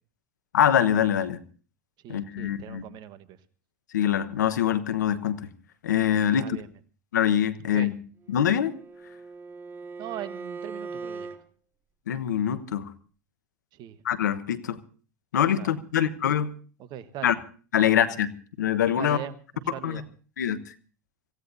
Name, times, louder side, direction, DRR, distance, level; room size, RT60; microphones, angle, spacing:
voice 1, 0.5-1.4 2.1-2.8 3.9-5.4 5.8-6.6 7.1-7.9 8.3-8.7 12.1-12.9 14.0-14.8 15.3-16.5 17.2-17.3 17.7-18.3 18.6-19.2 19.8-20.0 20.4-20.6, left 9 dB, 85° left, 13 dB, 1.1 m, -24 dB
voice 2, 2.0-3.4 6.3-6.7 7.7-7.9 10.0-11.3 13.8-14.0 15.6-15.7 16.9-17.3 17.8-18.0 19.0-20.0, right 11 dB, 50° right, 13 dB, 1.3 m, -40 dB
Bowed string instrument, 8.2-11.4, right 4 dB, 25° right, 1.8 m, -40 dB
26.0 x 16.0 x 2.7 m, 0.39 s
hypercardioid pair, 90°, 9 cm